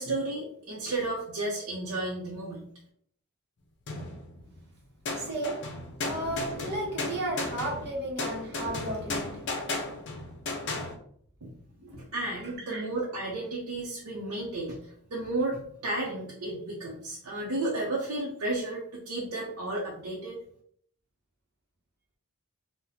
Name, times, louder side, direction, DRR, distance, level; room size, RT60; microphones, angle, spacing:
voice 1, 0.0-2.6 11.4-11.5 12.1-20.4, right 2 dB, 75° right, -5 dB, 0.7 m, -33 dB
sound 1, 3.9-4.6 5.1-11.0, left 3 dB, 50° left, 0.6 m, -35 dB
voice 2, 5.1-5.6 6.0-9.4 11.8-12.0 12.7-12.9, right 1 dB, 50° right, -2 dB, 0.9 m, -34 dB
2.8 x 2.1 x 4.0 m, 0.64 s
head